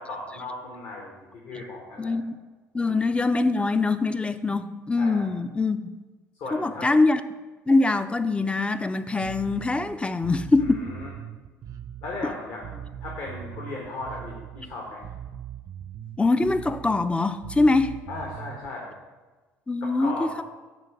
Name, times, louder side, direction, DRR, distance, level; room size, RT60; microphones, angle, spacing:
voice 1, 0.0-2.1 2.8-3.1 5.0-5.3 6.4-6.9 10.6-11.1 12.0-15.1 18.1-18.9 19.8-20.3, left 2 dB, 60° left, -2 dB, 1.4 m, -37 dB
voice 2, 2.0-2.4 2.7-5.9 6.5-7.2 7.7-10.8 16.2-18.0 19.7-20.4, left 3 dB, 15° left, 11 dB, 0.4 m, -23 dB
Bass guitar, 9.2-18.7, right 10 dB, 50° right, 0.6 m, -40 dB
8.8 x 3.2 x 6.0 m, 1.3 s
figure-of-eight pair, 55°, 8 cm